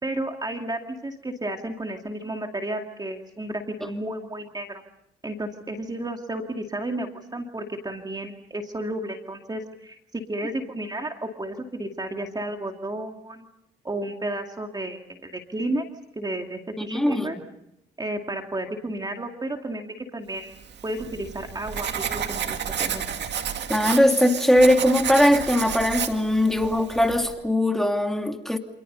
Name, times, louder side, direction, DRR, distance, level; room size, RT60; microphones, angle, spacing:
voice 1, 0.0-4.8 5.2-13.5 13.8-15.8 16.2-17.4 18.0-23.1, right 1 dB, 20° right, 4 dB, 2.4 m, -32 dB
voice 2, 16.8-17.3 23.7-28.6, left 1 dB, ahead, 4 dB, 2.7 m, -20 dB
Writing, 20.6-27.3, right 8 dB, 60° right, 2.2 m, -31 dB
28.5 x 27.5 x 5.5 m, 0.81 s
cardioid pair, 90°, 20 cm